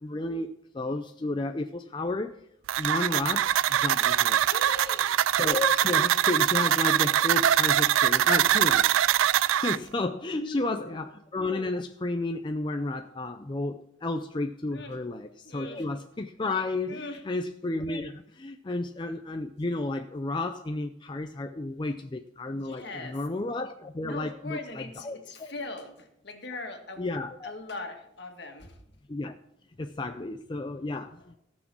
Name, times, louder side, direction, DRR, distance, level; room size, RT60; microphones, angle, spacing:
voice 1, 0.0-2.4 2.8-4.4 5.4-8.9 9.6-25.5 27.0-27.5 29.1-29.3 29.8-31.4, left 2 dB, 25° left, 6 dB, 0.4 m, -32 dB
sound 1, 2.7-9.8, right 11 dB, 85° right, 0.3 m, -23 dB
voice 2, 4.5-5.1 10.4-11.0 14.7-15.0 15.4-15.9 16.9-17.2 22.5-23.2 24.0-27.1 27.4-28.8, left 2 dB, 60° left, 4 dB, 2.0 m, -40 dB
17.0 x 6.2 x 6.1 m, 0.77 s
head